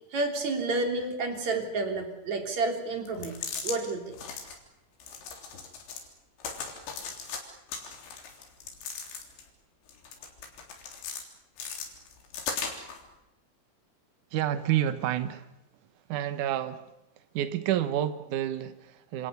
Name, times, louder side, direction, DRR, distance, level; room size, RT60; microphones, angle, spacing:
voice 1, 0.1-3.4 3.6-4.2, right 3 dB, 40° right, 4 dB, 4.3 m, -30 dB
sound 1, 3.1-3.8 4.1-4.6 5.0-6.1 6.4-7.4 7.7-9.5 9.9-11.2 11.6-13.0, left 6 dB, 75° left, 5.9 m, -38 dB
voice 2, 14.3-15.5 16.1-16.9 17.2-19.3, right 11 dB, 85° right, 11 dB, 1.8 m, -29 dB
28.0 x 27.5 x 6.9 m, 0.90 s
omnidirectional pair, 5.3 m